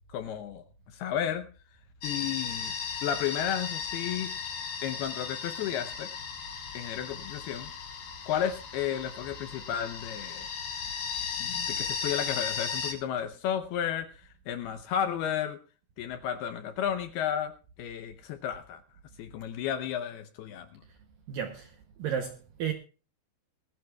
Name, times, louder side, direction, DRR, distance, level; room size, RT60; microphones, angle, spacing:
voice 1, 0.1-1.5 2.0-2.7 3.0-4.3 4.8-6.1 6.7-7.7 8.3-10.5 11.4-15.6 16.0-17.5 17.8-18.8 19.2-20.8, left 9 dB, 75° left, 2.4 m, -33 dB
sound 1, 2.0-12.9, left 6 dB, 60° left, 4.1 m, -36 dB
voice 2, 21.3-22.7, right 8 dB, 80° right, 2.0 m, -33 dB
21.0 x 15.0 x 2.3 m
omnidirectional pair, 5.3 m